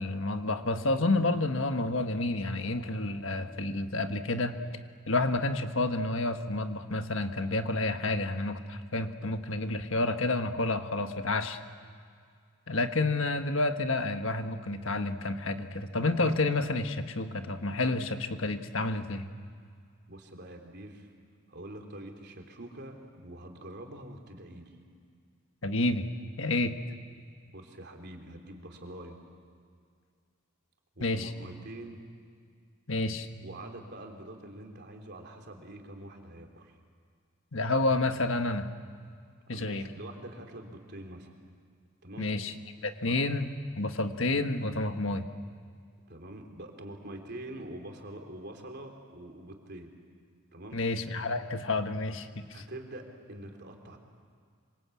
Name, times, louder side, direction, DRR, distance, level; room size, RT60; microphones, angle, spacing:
voice 1, 0.0-4.5 5.1-11.6 12.7-19.2 25.6-26.1 26.4-26.7 31.0-31.3 32.9-33.3 37.5-38.7 39.5-39.8 42.2-42.5 42.8-45.3 50.7-52.6, left 2 dB, 65° left, 7 dB, 1.5 m, -29 dB
voice 2, 20.1-21.1 21.5-24.7 27.5-29.2 31.0-32.0 33.4-36.8 39.5-41.3 42.0-42.3 43.1-43.2 46.1-49.9 50.5-50.8 52.5-54.0, right 1 dB, 50° right, 2 dB, 3.4 m, -45 dB
26.5 x 25.0 x 8.5 m, 2.1 s
head